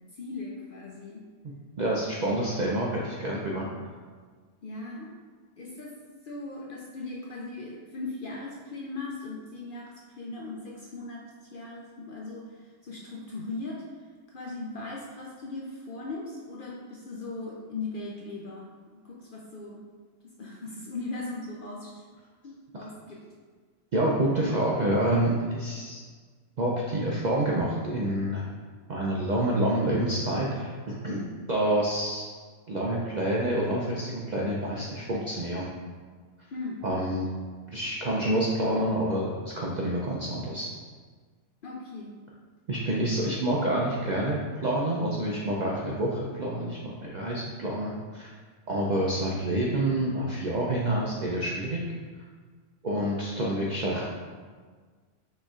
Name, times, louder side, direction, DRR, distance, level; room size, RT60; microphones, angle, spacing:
voice 1, 0.1-1.3 2.1-2.5 4.6-5.1 5.6-6.0 6.2-13.9 14.3-19.8 20.2-22.0 22.4-23.2 36.5-36.8 41.6-42.1, left 3 dB, 60° left, -3 dB, 0.5 m, -39 dB
voice 2, 1.8-3.7 23.9-26.0 26.6-28.4 28.9-32.3 32.7-35.7 36.8-37.3 37.7-40.7 42.7-48.3 48.7-51.8 52.8-54.1, right 1 dB, 60° right, -4 dB, 0.4 m, -28 dB
6.3 x 3.1 x 2.4 m, 1.5 s
omnidirectional pair, 1.3 m